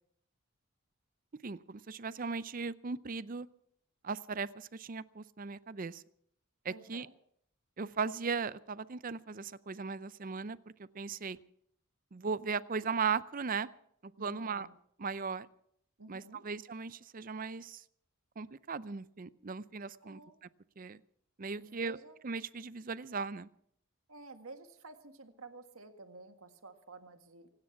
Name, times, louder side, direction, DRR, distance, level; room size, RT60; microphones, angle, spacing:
voice 1, 1.4-3.5 4.0-6.0 6.6-7.1 7.8-10.6 10.9-11.4 12.1-13.7 14.0-14.7 15.0-15.5 16.1-17.8 18.4-20.2 20.8-21.0 21.4-22.0 22.2-23.5, right 5 dB, 40° right, 16 dB, 0.5 m, -37 dB
voice 2, 6.7-7.1 14.2-14.7 16.0-16.4 20.0-20.4 21.6-22.2 24.1-27.5, right 3 dB, 80° right, 6 dB, 1.7 m, -52 dB
25.0 x 9.7 x 5.9 m, 0.70 s
head